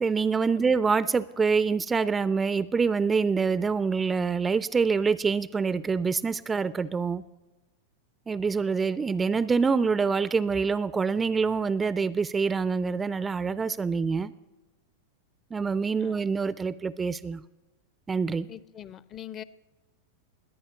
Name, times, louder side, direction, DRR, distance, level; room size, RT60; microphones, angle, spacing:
voice 1, 0.0-7.2 8.3-14.3 15.5-17.4 18.1-18.5, right 5 dB, 15° right, 17 dB, 0.4 m, -26 dB
voice 2, 18.5-19.4, left 10 dB, 30° left, 18 dB, 0.6 m, -42 dB
20.5 x 8.9 x 6.7 m, 1.1 s
figure-of-eight pair, 90°, 0 cm